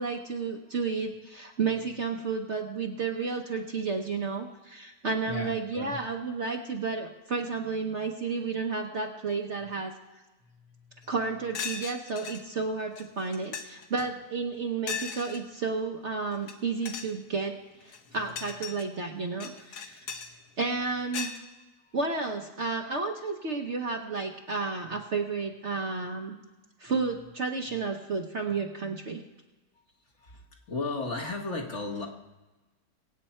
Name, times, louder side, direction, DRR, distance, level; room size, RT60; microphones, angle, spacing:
voice 1, 0.0-9.9 11.1-17.6 17.8-20.1 20.6-21.3 21.9-26.4 26.8-29.2, right 4 dB, 50° right, 3 dB, 1.1 m, -32 dB
voice 2, 5.3-6.0 10.6-10.8 14.0-14.1 18.1-18.2 21.8-22.0 30.2-32.1, left 3 dB, 45° left, 2 dB, 1.7 m, -35 dB
sound 1, 11.0-11.1 11.5-12.4 12.9-13.0 13.3-13.8 14.9-15.4 16.3-16.5 16.8-17.1 17.8-18.8 19.4-20.3 21.1-21.4, left 6 dB, 70° left, 1.5 m, -37 dB
23.5 x 8.6 x 4.4 m, 1.1 s
omnidirectional pair, 1.8 m